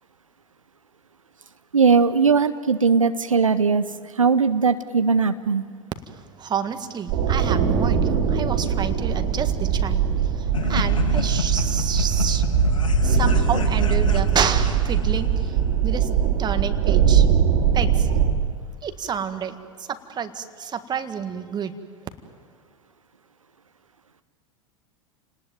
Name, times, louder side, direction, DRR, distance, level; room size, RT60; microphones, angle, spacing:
voice 1, 1.7-5.6, right 5 dB, 90° right, 11 dB, 0.7 m, -19 dB
voice 2, 6.4-12.4 13.0-15.6 15.8-16.1 16.4-17.3 17.7-18.1 18.8-21.7, right 7 dB, 25° right, 9 dB, 1.8 m, -29 dB
sound 1, 7.1-18.3, right 8 dB, 55° right, 2.8 m, -21 dB
sound 2, 10.5-15.3, left 3 dB, 85° left, 1.7 m, -27 dB
30.0 x 19.0 x 9.2 m, 2.1 s
figure-of-eight pair, 85°, 16 cm